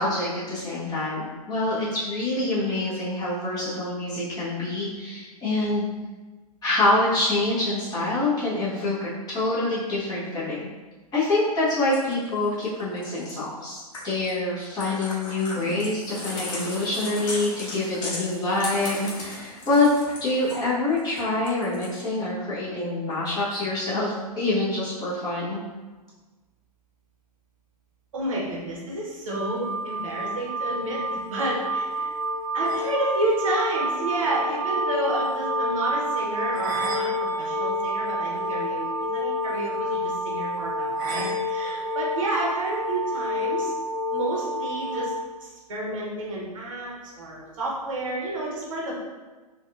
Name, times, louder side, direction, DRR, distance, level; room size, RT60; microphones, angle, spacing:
voice 1, 0.0-5.9 6.6-10.7 11.1-19.9 20.2-25.6, left 2 dB, 20° left, -9 dB, 1.2 m, -26 dB
sound 1, 11.9-13.3 13.9-14.3 14.6-20.6 21.0-22.0, left 2 dB, 55° left, 1.1 m, -38 dB
sound 2, 15.5-20.5, left 2 dB, 35° left, 0.9 m, -39 dB
voice 2, 28.1-32.1 32.5-43.7 44.1-45.1 45.4-49.0, right 2 dB, 55° right, -4 dB, 1.0 m, -30 dB
sound 3, 29.3-45.2, equal, 35° right, 0.5 m, -28 dB
4.0 x 2.5 x 2.5 m, 1.3 s
figure-of-eight pair, 110°, 20 cm